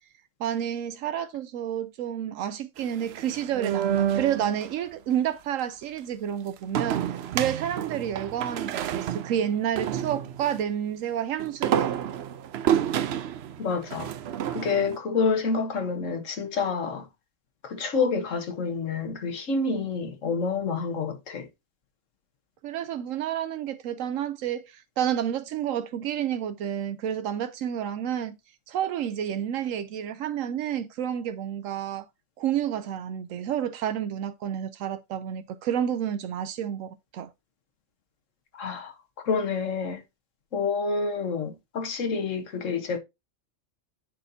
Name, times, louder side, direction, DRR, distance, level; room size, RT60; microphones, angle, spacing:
voice 1, 0.4-12.0 22.6-28.4 28.7-32.1 32.4-37.3, right 9 dB, 80° right, 1.0 m, -30 dB
sound 1, 2.8-4.7 6.7-10.6 11.4-15.0, right 10 dB, 65° right, 0.7 m, -29 dB
voice 2, 13.6-14.1 14.5-17.1 17.6-21.5 38.5-40.0 40.5-43.0, left 4 dB, 75° left, 1.5 m, -28 dB
9.8 x 4.2 x 2.7 m
omnidirectional pair, 1.3 m